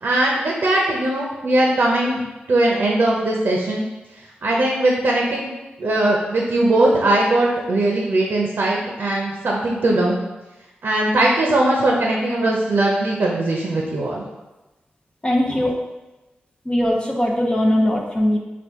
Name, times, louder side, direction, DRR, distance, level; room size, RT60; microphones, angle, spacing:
voice 1, 0.0-2.2 2.5-3.8 4.4-5.5 5.8-10.2 10.8-14.2, right 1 dB, 70° right, -2 dB, 0.7 m, -19 dB
voice 2, 15.2-15.7 16.7-18.4, left 1 dB, 25° left, -1 dB, 0.7 m, -20 dB
4.4 x 2.5 x 3.6 m, 1.1 s
cardioid pair, 45°, 4 cm